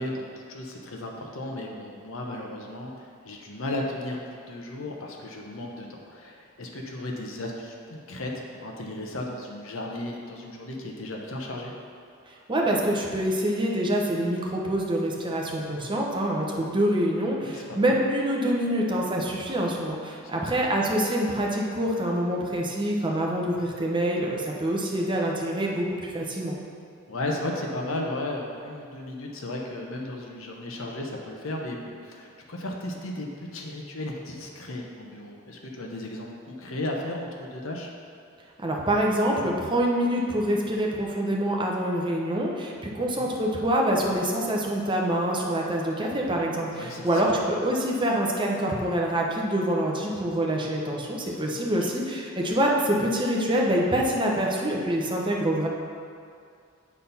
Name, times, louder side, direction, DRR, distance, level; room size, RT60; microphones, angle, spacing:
voice 1, 0.0-11.7 17.2-18.0 20.3-20.6 27.1-37.9 42.9-43.3 46.8-47.5 51.3-51.7, left 1 dB, 75° left, 0 dB, 0.9 m, -35 dB
voice 2, 12.3-26.5 38.6-55.7, right 1 dB, 25° right, -1 dB, 0.9 m, -26 dB
8.5 x 4.1 x 5.5 m, 2.3 s
head